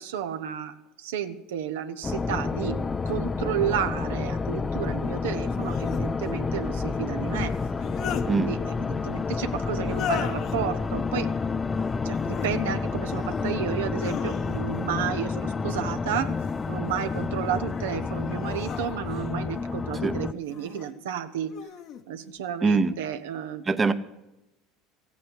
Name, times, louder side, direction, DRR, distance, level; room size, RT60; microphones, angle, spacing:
voice 1, 0.0-2.8 3.0-7.5 8.3-11.3 12.0-16.3 16.7-21.5 22.1-23.6, right 9 dB, 80° right, 8 dB, 0.9 m, -32 dB
sound 1, 2.0-20.3, left 4 dB, 25° left, 0.5 m, -29 dB
sound 2, 3.1-3.2 5.4-6.1 7.6-8.3 9.8-10.6 12.0-12.5 13.0-13.5 13.9-14.8 16.1-16.7 17.3-19.3 20.4-20.9 21.5-22.0, left 9 dB, 55° left, 1.1 m, -37 dB
voice 2, 22.6-22.9 23.7-23.9, right 4 dB, 25° right, 11 dB, 0.8 m, -22 dB
15.0 x 8.5 x 8.2 m, 0.95 s
hypercardioid pair, 85°, 0 cm